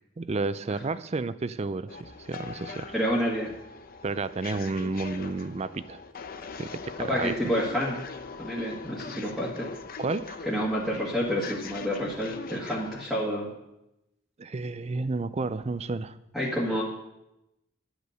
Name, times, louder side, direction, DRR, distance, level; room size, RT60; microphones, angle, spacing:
voice 1, 0.2-2.9 4.0-6.0 6.6-7.4 10.0-10.4 14.4-16.2, right 3 dB, 30° right, 14 dB, 0.4 m, -31 dB
sound 1, 1.9-13.1, left 4 dB, 45° left, 0.7 m, -41 dB
voice 2, 2.9-3.5 7.0-8.0 8.4-9.7 10.5-13.5 16.3-16.8, equal, ahead, -6 dB, 1.6 m, -29 dB
11.0 x 8.2 x 6.4 m, 0.88 s
head